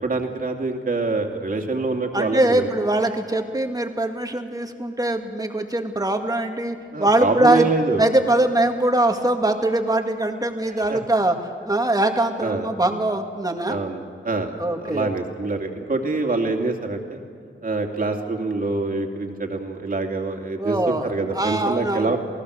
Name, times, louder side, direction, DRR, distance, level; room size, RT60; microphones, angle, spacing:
voice 1, 0.0-2.7 6.9-8.0 10.9-11.2 12.4-12.7 13.7-14.5 14.8-17.2 17.6-22.2, right 3 dB, 45° right, 3 dB, 2.7 m, -25 dB
voice 2, 2.1-7.7 8.0-11.4 11.7-13.8 14.6-15.1 20.6-22.2, right 1 dB, 20° right, 4 dB, 2.1 m, -22 dB
29.0 x 18.5 x 6.6 m, 2.3 s
wide cardioid pair, 90°, 20 cm